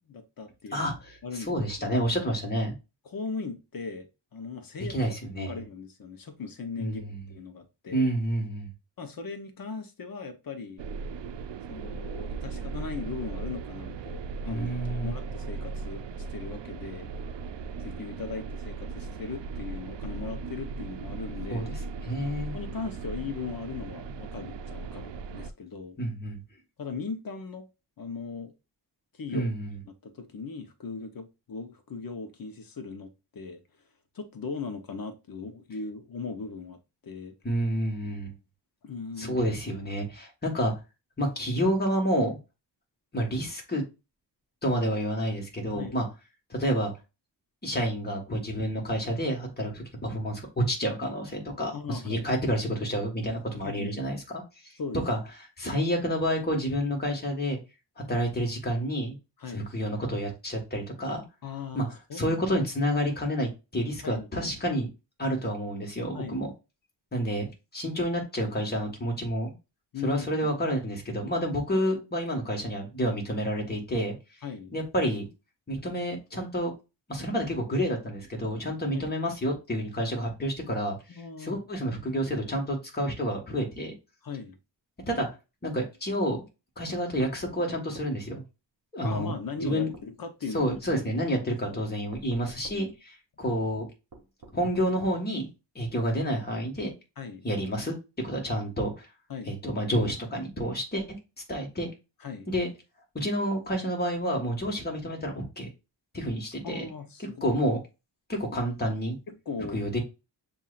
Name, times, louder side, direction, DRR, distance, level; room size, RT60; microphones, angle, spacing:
voice 1, 0.1-0.9 1.2-2.0 3.0-5.0 5.5-8.1 9.0-10.8 11.7-17.1 17.8-21.7 22.5-26.0 26.8-27.7 28.0-28.5 29.1-29.5 30.0-33.6 34.1-37.3 38.8-39.4 45.7-46.0 51.7-52.3 53.6-53.9 54.8-55.0 59.4-59.7 61.4-62.4 64.0-64.3 66.1-66.5 69.9-70.5 74.4-74.7 78.9-79.1 81.1-81.6 84.2-84.6 89.0-90.6 91.2-91.8 92.7-92.9 97.2-97.5 99.3-99.6 102.2-102.5 106.6-107.6 109.3-109.8, left 4 dB, 55° left, 1.0 m, -38 dB
voice 2, 0.7-2.7 4.9-5.6 6.8-7.2 7.9-8.7 14.5-15.1 21.5-21.7 22.0-22.6 26.0-26.4 29.3-29.8 37.4-38.3 39.2-40.7 41.2-42.4 43.1-43.8 44.6-46.0 46.5-46.9 47.6-54.7 55.0-55.2 55.6-57.6 58.1-59.2 59.5-61.2 61.7-61.8 62.1-64.9 65.2-66.5 67.1-67.5 67.7-69.5 70.0-74.1 74.7-75.3 75.7-76.7 77.1-81.0 81.4-83.9 85.1-85.3 85.6-86.4 86.8-88.4 88.9-89.3 89.6-89.9 90.5-92.9 93.4-93.8 94.5-95.5 95.7-96.9 97.4-98.0 98.2-99.1 99.4-101.0 101.5-101.9 102.5-102.7 103.1-105.7 106.1-106.9 107.4-107.8 108.3-109.2 109.7-110.0, equal, 20° left, 1.6 m, -29 dB
sound 1, 10.8-25.5, right 4 dB, 75° right, 0.6 m, -37 dB
sound 2, 87.2-88.1 89.1-89.3 89.9-90.1 90.7-90.9 92.1-92.8 94.1-94.9, right 3 dB, 50° right, 1.1 m, -48 dB
7.3 x 2.7 x 2.5 m
wide cardioid pair, 110°, 43 cm